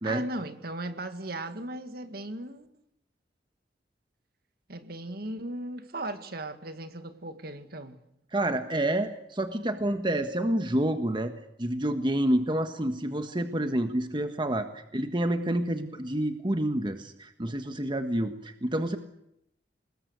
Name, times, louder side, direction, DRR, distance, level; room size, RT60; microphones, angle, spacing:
voice 1, 0.0-2.7 4.7-8.0, right 1 dB, 55° right, 2.0 m, -37 dB
voice 2, 8.3-11.3 11.6-19.0, right 1 dB, 25° right, 1.4 m, -28 dB
26.0 x 21.0 x 8.3 m
head